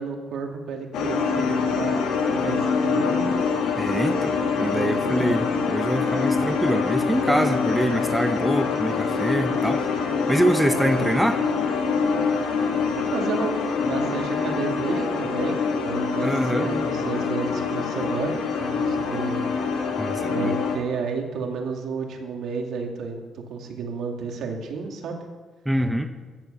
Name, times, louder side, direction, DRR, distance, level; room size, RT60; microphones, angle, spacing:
voice 1, 0.0-3.4 4.7-5.3 13.0-13.5 13.8-15.6 15.8-18.4 18.8-19.5 20.3-23.2 23.5-25.2, right 5 dB, 75° right, 2 dB, 2.5 m, -31 dB
sound 1, 0.9-20.8, left 5 dB, 85° left, 2.1 m, -25 dB
voice 2, 3.8-9.9 10.3-11.4 16.2-16.7 20.0-20.5 25.6-26.1, right 1 dB, 5° right, 7 dB, 1.0 m, -25 dB
14.5 x 10.0 x 6.8 m, 1.3 s
cardioid pair, 90°, 0 cm